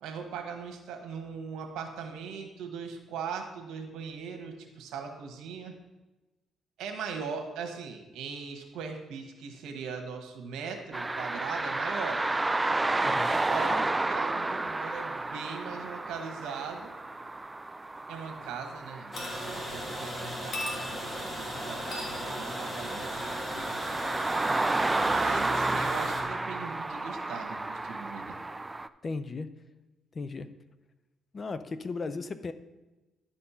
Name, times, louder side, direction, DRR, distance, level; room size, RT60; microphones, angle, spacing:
voice 1, 0.0-5.7 6.8-12.2 13.2-16.9 18.1-19.1 19.4-23.1 25.0-28.4, right 6 dB, 85° right, 4 dB, 1.3 m, -39 dB
sound 1, 10.9-28.9, right 2 dB, 15° right, 0.3 m, -32 dB
voice 2, 13.0-13.3 29.0-29.5 30.1-30.5 31.3-32.5, left 4 dB, 40° left, 12 dB, 0.5 m, -36 dB
sound 2, 18.0-18.1 18.4-18.7 19.2-19.8 20.5-21.2 21.9-22.3 23.6-23.8 24.8-24.9, left 1 dB, 65° left, 1.7 m, -39 dB
sound 3, 19.1-26.2, equal, 10° left, 1.8 m, -37 dB
10.5 x 4.4 x 5.6 m, 1.1 s
cardioid pair, 90°, 0 cm